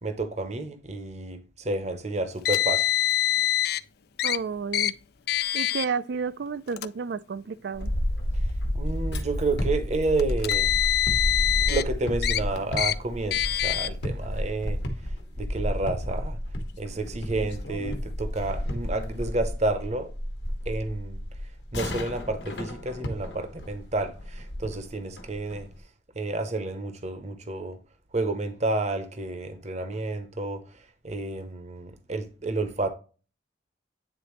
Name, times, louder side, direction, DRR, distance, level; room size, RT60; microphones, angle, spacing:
voice 1, 0.0-2.9 8.7-10.7 11.4-14.8 15.4-16.4 16.8-20.1 20.7-21.2 21.7-25.7 26.2-27.8 28.1-30.8 31.0-32.9, right 2 dB, 40° right, 0.8 m, -30 dB
Car, 2.4-3.8 4.2-4.4 4.7-4.9 5.3-5.9 6.7-6.9 7.8-7.9 10.2-11.8 12.2-12.4 12.8-12.9 13.3-13.9, left 13 dB, 60° left, 0.3 m, -24 dB
voice 2, 4.2-4.9 5.5-7.9, right 5 dB, 70° right, 0.4 m, -31 dB
sound 1, 7.7-25.8, equal, 80° left, 1.2 m, -31 dB
8.9 x 3.9 x 3.1 m
head